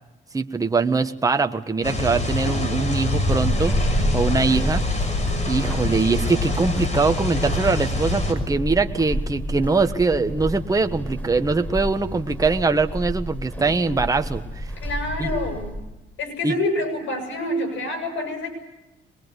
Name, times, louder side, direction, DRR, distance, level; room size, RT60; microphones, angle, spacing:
voice 1, 0.3-3.7 4.1-4.8 5.5-14.7 15.2-15.3 16.4-16.5, right 4 dB, 15° right, 7 dB, 1.2 m, -22 dB
sound 1, 1.8-8.3, left 2 dB, 35° left, 6.5 m, -25 dB
Walk footsteps / Squeak, 3.3-15.9, equal, 10° left, 4.3 m, -30 dB
voice 2, 14.8-15.8 16.2-18.5, left 1 dB, 75° left, 5 dB, 7.0 m, -27 dB
23.0 x 21.5 x 8.1 m, 1.0 s
cardioid pair, 90°, 20 cm